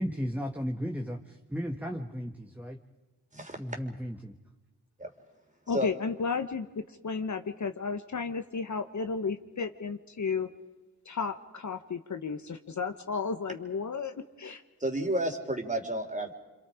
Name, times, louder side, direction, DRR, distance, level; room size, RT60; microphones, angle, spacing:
voice 1, 0.0-2.8 3.6-4.3, equal, 5° right, 3 dB, 1.6 m, -35 dB
voice 2, 5.7-10.5 11.0-14.6, left 5 dB, 50° left, 7 dB, 1.4 m, -33 dB
voice 3, 14.8-16.3, right 1 dB, 20° right, 4 dB, 3.5 m, -31 dB
27.5 x 26.0 x 5.1 m, 1.1 s
cardioid pair, 65°, 38 cm